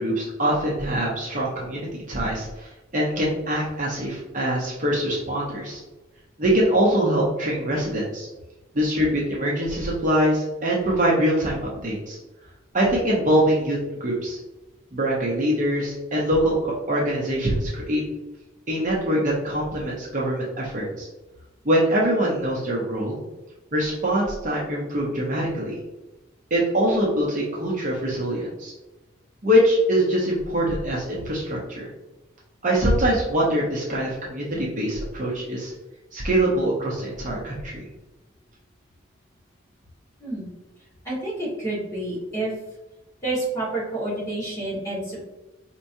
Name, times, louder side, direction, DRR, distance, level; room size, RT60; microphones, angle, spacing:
voice 1, 0.0-5.8 6.4-8.3 8.7-12.2 12.7-14.4 14.9-18.0 18.7-21.1 21.6-23.2 23.7-25.7 26.5-28.7 29.4-31.9 32.6-35.7 36.1-37.8, right 1 dB, 35° right, -4 dB, 0.7 m, -23 dB
voice 2, 41.0-42.5 43.2-45.2, right 2 dB, 15° left, -8 dB, 1.5 m, -29 dB
4.4 x 3.0 x 2.6 m, 1.0 s
head